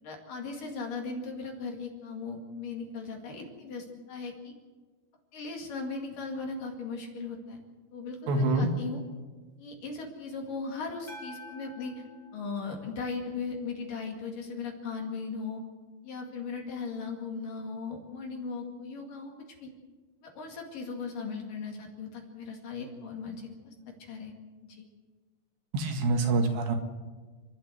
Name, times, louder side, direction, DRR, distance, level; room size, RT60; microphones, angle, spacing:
voice 1, 0.0-4.5 5.3-7.6 7.9-9.0 9.6-12.0 12.3-15.6 16.0-19.3 19.6-19.7 20.2-23.7 24.0-24.3 24.6-24.8, left 4 dB, 55° left, 2 dB, 3.5 m, -38 dB
voice 2, 8.3-8.7 25.7-26.8, right 3 dB, 75° right, 4 dB, 4.0 m, -26 dB
sound 1, 11.1-13.5, left 1 dB, 10° left, 3.9 m, -49 dB
29.0 x 12.0 x 8.0 m, 1.4 s
omnidirectional pair, 5.1 m